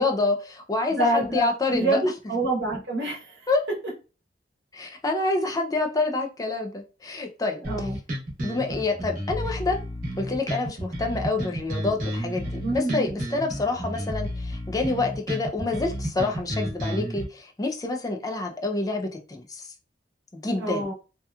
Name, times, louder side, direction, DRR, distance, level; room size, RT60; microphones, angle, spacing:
voice 1, 0.0-2.0 3.5-3.6 4.7-7.9 8.4-9.8 10.2-19.7 20.3-20.9, left 3 dB, 20° left, 3 dB, 0.4 m, -27 dB
voice 2, 1.0-3.3 7.7-8.0 12.6-13.1 20.6-20.9, right 1 dB, 75° right, -3 dB, 1.0 m, -26 dB
sound 1, 7.6-17.2, equal, 50° right, 1.0 m, -31 dB
2.8 x 2.2 x 2.3 m, 0.33 s
head